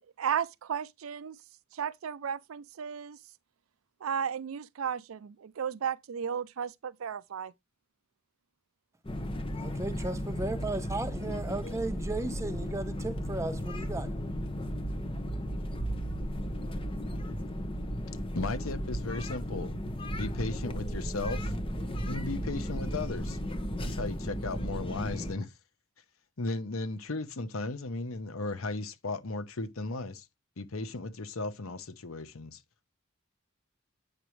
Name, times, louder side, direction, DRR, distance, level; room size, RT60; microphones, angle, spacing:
voice 1, 0.2-1.4 1.7-3.2 4.0-7.5, right 7 dB, 80° right, 0.4 m, -34 dB
sound 1, 9.0-25.3, equal, 25° left, 1.0 m, -35 dB
voice 2, 9.6-14.1, right 2 dB, 15° right, 0.9 m, -35 dB
voice 3, 18.3-19.7 20.1-21.5 22.0-23.4 23.8-25.5 26.4-30.3 30.6-32.6, left 3 dB, 85° left, 0.9 m, -36 dB
8.7 x 6.0 x 3.2 m
head